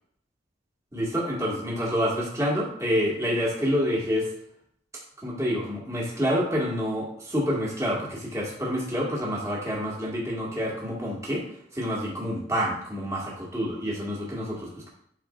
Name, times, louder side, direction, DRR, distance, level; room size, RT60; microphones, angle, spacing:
voice 1, 0.9-4.3 5.2-11.4 11.7-14.9, equal, 15° right, -4 dB, 1.9 m, -28 dB
9.1 x 5.1 x 2.5 m, 0.68 s
head